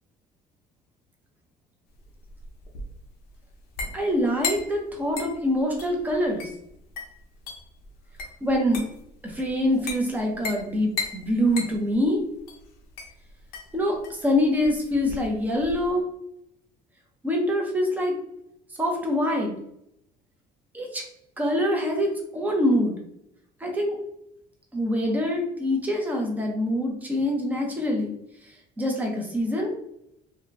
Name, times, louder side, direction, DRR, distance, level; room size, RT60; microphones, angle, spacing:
sound 1, 1.9-15.9, left 4 dB, 80° left, 0.8 m, -37 dB
voice 1, 3.9-6.5 8.4-8.8 9.2-12.2 13.7-16.1 17.2-18.2 18.8-19.6 20.7-21.0 21.4-23.0 23.6-24.0 24.7-28.1 28.4-29.7, left 1 dB, 10° right, 0 dB, 0.8 m, -25 dB
2.8 x 2.3 x 3.2 m, 0.76 s
cardioid pair, 100°, 16 cm